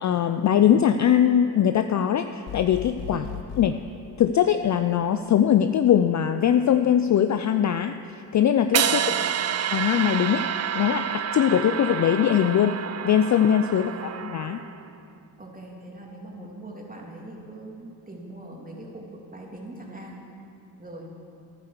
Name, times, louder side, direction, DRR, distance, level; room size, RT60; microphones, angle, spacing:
voice 1, 0.0-3.2 3.6-3.8 4.2-8.0 8.3-9.2 9.7-10.5 10.7-13.9 14.3-14.6, left 9 dB, 40° left, 9 dB, 0.4 m, -21 dB
sound 1, 2.5-3.7, left 9 dB, 60° left, 1.0 m, -36 dB
sound 2, 8.7-14.9, right 8 dB, 35° right, 0.5 m, -28 dB
voice 2, 8.8-9.4 13.7-14.1 15.4-20.2 20.8-21.1, right 1 dB, 15° right, -1 dB, 2.6 m, -41 dB
10.5 x 9.0 x 6.6 m, 2.7 s
supercardioid pair, 60°, 48 cm